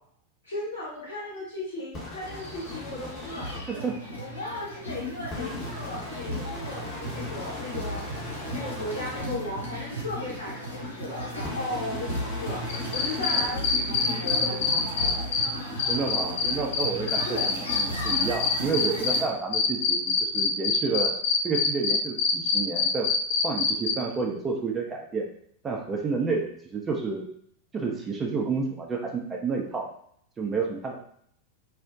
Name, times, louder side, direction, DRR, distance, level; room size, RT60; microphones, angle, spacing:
voice 1, 0.4-3.4 3.7-3.9 4.2-12.7 12.9-15.1 17.2-17.5, left 1 dB, 70° left, -6 dB, 1.2 m, -36 dB
sound 1, 1.9-3.6 5.3-9.2 11.4-13.5, left 2 dB, 25° left, 0.8 m, -39 dB
sound 2, 2.2-19.2, equal, 90° right, 0.6 m, -35 dB
sound 3, 12.7-15.5 15.8-19.2 19.5-23.9, left 6 dB, 55° left, 0.3 m, -24 dB
voice 2, 15.9-21.2 21.4-23.1 23.4-25.3 25.6-27.3 27.7-29.9 30.4-31.0, right 4 dB, 20° right, 0 dB, 0.5 m, -30 dB
2.5 x 2.1 x 2.4 m, 0.65 s
figure-of-eight pair, 90°, 0 cm